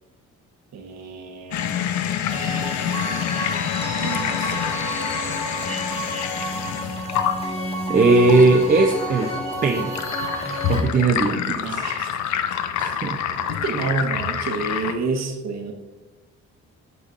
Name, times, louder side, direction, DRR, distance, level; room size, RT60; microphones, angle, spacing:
voice 1, 0.7-2.2 2.7-3.0 3.3-3.6 4.0-4.8 11.5-12.4 13.5-15.7, right 4 dB, 60° right, 4 dB, 1.0 m, -30 dB
sound 1, 1.5-14.9, left 9 dB, 70° left, 0.5 m, -27 dB
sound 2, 2.3-10.8, equal, 20° left, 1.3 m, -30 dB
voice 2, 7.9-9.3 9.6-10.0 10.7-11.8 12.8-13.2, right 3 dB, 30° right, 1 dB, 0.5 m, -18 dB
8.2 x 4.9 x 2.5 m, 1.2 s
cardioid pair, 90°, 30 cm